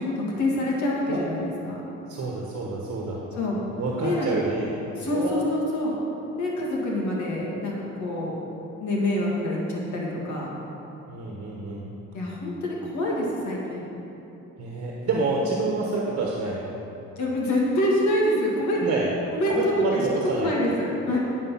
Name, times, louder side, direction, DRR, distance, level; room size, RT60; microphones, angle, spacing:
voice 1, 0.0-1.4 1.7-1.8 3.4-3.6 4.0-4.4 5.0-5.9 6.4-8.4 8.8-10.5 12.1-13.8 17.2-18.8 19.3-20.0 20.4-21.2, left 1 dB, 70° left, -4 dB, 2.2 m, -26 dB
voice 2, 2.1-3.2 3.8-4.7 5.1-5.4 11.1-11.9 14.6-16.7 18.8-19.1 19.5-20.6, right 3 dB, 55° right, -3 dB, 1.2 m, -28 dB
10.0 x 5.1 x 5.7 m, 2.9 s
cardioid pair, 90°, 30 cm